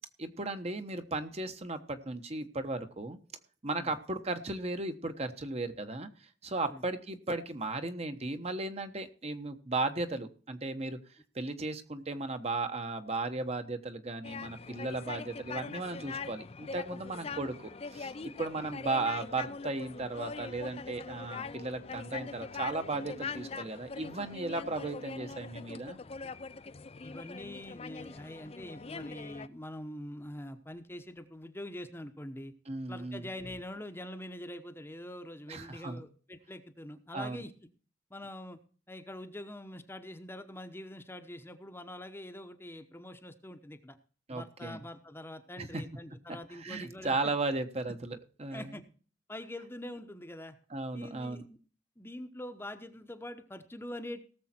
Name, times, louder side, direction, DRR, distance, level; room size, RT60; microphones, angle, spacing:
voice 1, 0.2-3.2 3.6-6.1 6.4-11.0 11.3-26.0 32.7-33.3 35.5-36.0 37.1-37.4 44.3-44.8 45.6-45.8 46.5-48.8 50.7-51.4, right 2 dB, 35° right, 8 dB, 1.2 m, -36 dB
sound 1, 14.2-29.5, left 4 dB, 35° left, 0.5 m, -42 dB
voice 2, 27.0-32.5 32.9-37.5 38.1-38.6 38.9-44.0 44.3-47.3 48.5-48.8 49.3-50.6 50.9-51.6 52.0-54.2, left 1 dB, 15° left, 8 dB, 1.0 m, -44 dB
18.0 x 7.2 x 4.4 m, 0.40 s
head